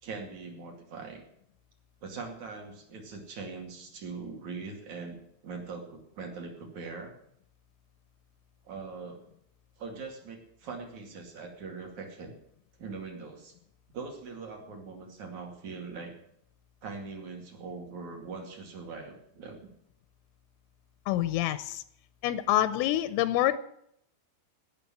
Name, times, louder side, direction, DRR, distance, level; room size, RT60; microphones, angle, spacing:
voice 1, 0.0-1.3 2.0-5.2 5.4-7.1 8.6-9.2 9.8-12.4 12.8-13.5 13.9-16.1 16.8-19.7, right 4 dB, 45° right, 2 dB, 3.1 m, -41 dB
voice 2, 21.1-21.8 22.2-23.6, left 13 dB, 85° left, 13 dB, 3.2 m, -26 dB
17.5 x 6.8 x 7.4 m, 0.73 s
omnidirectional pair, 5.5 m